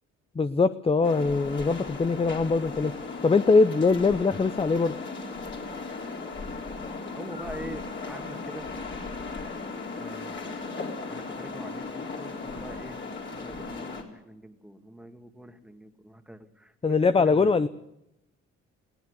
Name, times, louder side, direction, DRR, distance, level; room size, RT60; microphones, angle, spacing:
voice 1, 0.4-2.9 3.2-4.9 16.8-17.7, left 4 dB, 20° left, 12 dB, 0.6 m, -22 dB
sound 1, 1.0-14.0, left 3 dB, 40° left, 4.1 m, -37 dB
voice 2, 7.2-8.7 10.0-13.0 13.3-17.5, right 1 dB, 5° right, 7 dB, 2.0 m, -44 dB
20.5 x 16.0 x 8.1 m, 0.85 s
cardioid pair, 90°, 30 cm